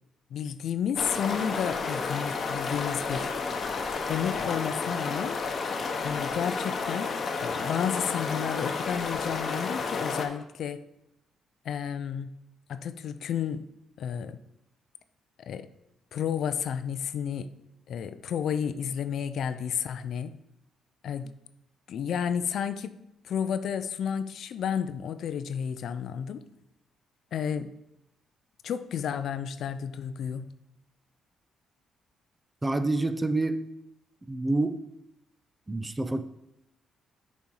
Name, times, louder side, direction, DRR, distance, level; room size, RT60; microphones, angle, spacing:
voice 1, 0.3-3.4 4.1-5.4 6.0-7.1 7.4-10.8 11.6-12.3 12.7-13.6 14.0-14.4 15.4-15.7 16.1-17.5 17.9-20.3 21.0-21.3 21.9-23.0 23.2-26.4 27.3-27.7 28.6-30.5, left 8 dB, 70° left, 12 dB, 0.4 m, -31 dB
sound 1, 1.0-10.3, left 4 dB, 50° left, 0.9 m, -31 dB
voice 2, 32.6-33.7 34.3-34.8 35.7-36.2, right 2 dB, 15° right, 11 dB, 0.5 m, -27 dB
6.9 x 4.2 x 4.7 m, 0.85 s
cardioid pair, 90°, 0 cm